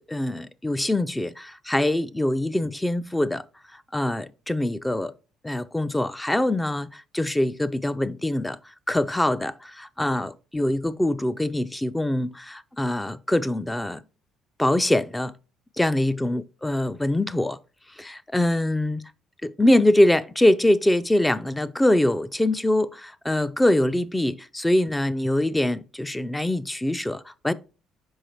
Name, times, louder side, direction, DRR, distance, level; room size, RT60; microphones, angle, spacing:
voice 1, 0.0-3.4 3.7-5.1 5.4-8.6 8.9-14.0 14.6-15.3 15.8-17.6 18.0-19.0 19.4-27.5, left 1 dB, 10° left, 0.4 m, -23 dB
6.3 x 4.9 x 3.0 m
supercardioid pair, 80°, 0 cm